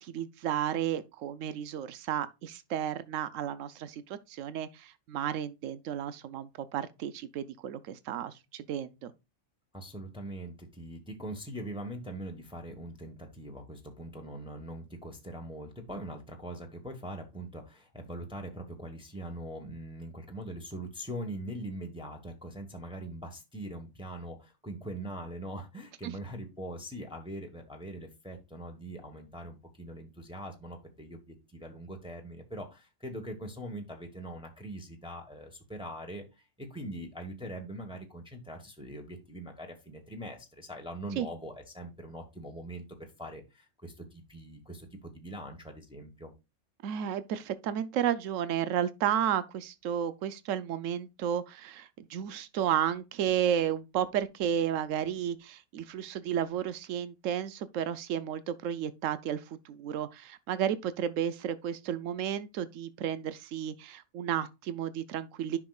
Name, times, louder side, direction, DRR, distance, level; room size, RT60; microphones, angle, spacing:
voice 1, 0.0-9.1 41.2-41.3 46.8-65.6, right 9 dB, 85° right, 1.0 m, -32 dB
voice 2, 9.7-46.3, right 1 dB, 5° right, 1.1 m, -42 dB
10.0 x 5.8 x 2.3 m
omnidirectional pair, 1.3 m